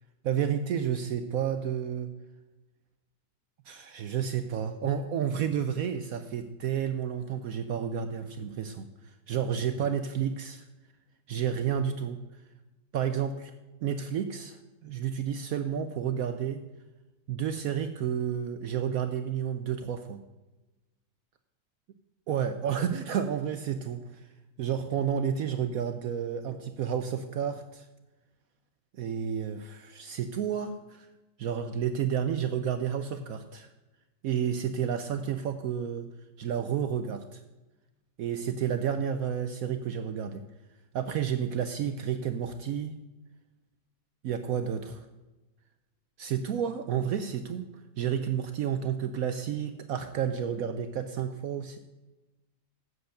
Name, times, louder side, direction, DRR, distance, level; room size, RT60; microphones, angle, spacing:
voice 1, 0.2-2.1 3.7-10.6 11.3-12.2 12.9-13.5 13.8-16.6 17.3-20.2 22.3-24.3 24.6-27.9 29.0-31.1 31.4-33.7 34.2-36.1 36.4-37.4 38.2-40.4 40.9-43.0 44.2-45.1 46.2-47.6 48.0-51.8, right 8 dB, 70° right, 8 dB, 0.9 m, -31 dB
7.9 x 7.8 x 6.5 m, 1.1 s
omnidirectional pair, 1.8 m